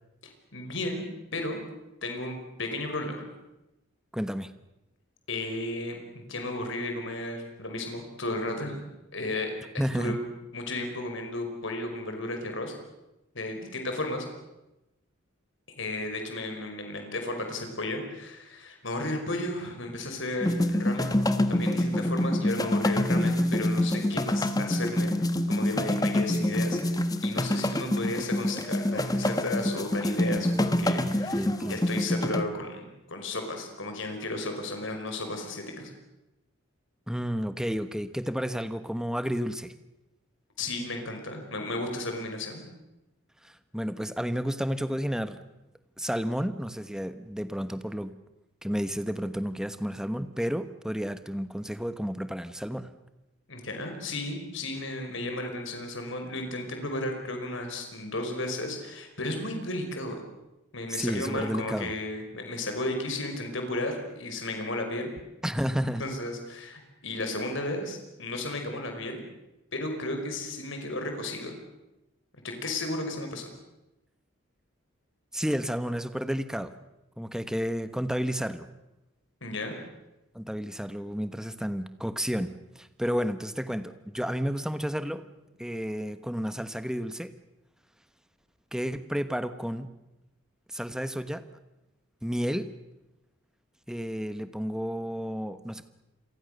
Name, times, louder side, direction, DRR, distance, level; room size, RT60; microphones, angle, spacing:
voice 1, 0.2-1.6 2.0-3.3 5.3-8.8 9.1-9.5 9.9-10.2 10.5-12.7 13.4-14.3 15.8-21.2 21.5-25.2 25.5-35.9 40.6-42.6 53.5-60.3 60.7-65.1 66.0-69.2 69.7-71.6 72.4-73.5 79.4-79.8, left 2 dB, 65° left, 4 dB, 5.3 m, -34 dB
voice 2, 4.1-4.5 9.8-10.2 30.8-31.8 37.1-39.7 43.4-45.4 46.0-48.1 48.6-52.9 60.9-61.9 65.4-66.0 75.3-76.7 77.2-78.7 80.3-85.2 85.6-87.3 88.7-89.9 90.7-91.4 92.2-92.7 93.9-95.8, equal, 5° right, 11 dB, 1.1 m, -31 dB
sound 1, 20.4-32.4, left 1 dB, 15° left, 1.1 m, -26 dB
28.5 x 23.0 x 6.7 m, 0.96 s
head